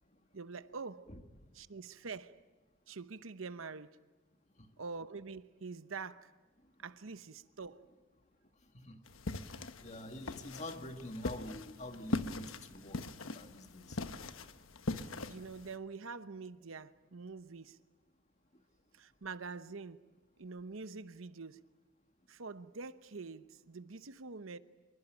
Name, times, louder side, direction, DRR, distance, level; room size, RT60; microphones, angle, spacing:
voice 1, 0.3-1.1 1.5-2.4 2.9-4.0 4.8-6.3 6.8-7.9 15.3-17.8 18.9-20.0 20.4-21.6 22.3-24.6, right 4 dB, 85° right, 0.9 m, -45 dB
sound 1, 9.1-15.8, left 2 dB, 90° left, 1.2 m, -41 dB
voice 2, 9.8-13.1 13.3-14.0, left 1 dB, 35° left, 1.8 m, -46 dB
26.0 x 22.5 x 9.1 m
head